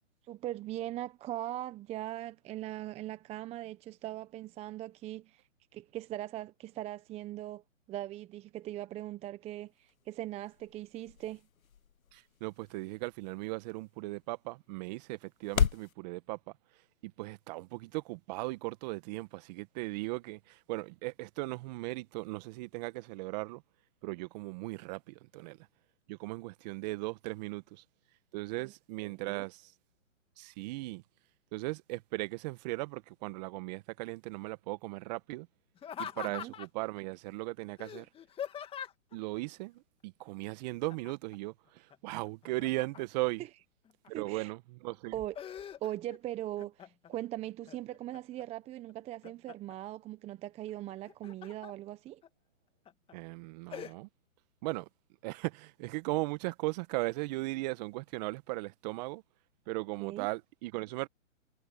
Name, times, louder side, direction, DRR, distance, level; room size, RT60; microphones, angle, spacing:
voice 1, 0.3-5.4 5.7-7.6 7.9-11.4 29.0-29.4 36.2-36.5 44.1-44.5 45.1-45.4 45.8-52.2 60.0-60.3, right 14 dB, 15° right, 1.0 m, -40 dB
sound 1, 9.7-15.9, left 8 dB, 80° left, 1.1 m, -38 dB
voice 2, 12.1-16.4 17.0-23.6 24.0-25.6 26.1-27.8 28.3-29.7 30.4-31.0 31.5-35.5 36.0-38.1 39.1-43.4 44.1-45.2 53.1-54.1 54.6-54.9 55.2-59.2 59.7-61.1, right 22 dB, 30° right, 1.4 m, -37 dB
Laughter, 35.8-36.9 37.8-39.2 40.9-41.4 41.7-43.3 43.8-44.5 44.9-46.2 46.6-47.2 47.7-48.4 48.9-49.8 50.9-51.7 52.2-52.3 52.9-53.1 53.7-53.9, left 9 dB, 15° left, 2.1 m, -43 dB
hypercardioid pair, 140°, 40 cm